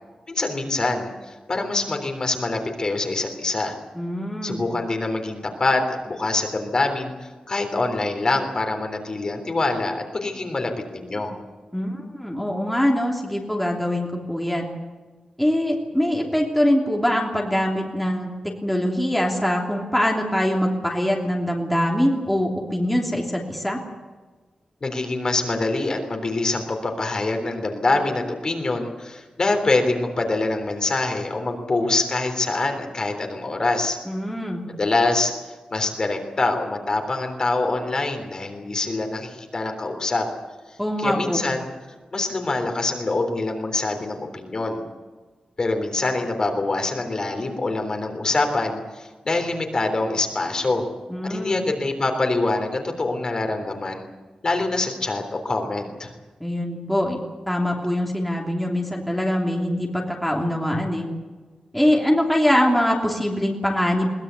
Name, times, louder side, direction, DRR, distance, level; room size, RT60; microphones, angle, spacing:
voice 1, 0.3-3.8 4.4-11.3 24.8-34.0 34.7-35.3 35.7-40.3 41.0-41.7 42.1-44.8 45.6-50.9 51.2-54.0 54.4-56.1, left 2 dB, 35° left, 4 dB, 3.5 m, -25 dB
voice 2, 3.9-4.6 11.7-14.7 15.4-18.3 18.6-23.8 34.0-34.6 40.8-41.4 51.1-51.6 56.4-57.2 57.5-61.1 61.7-64.1, equal, ahead, -1 dB, 3.0 m, -23 dB
22.0 x 20.5 x 8.2 m, 1.3 s
wide cardioid pair, 180°, 2 cm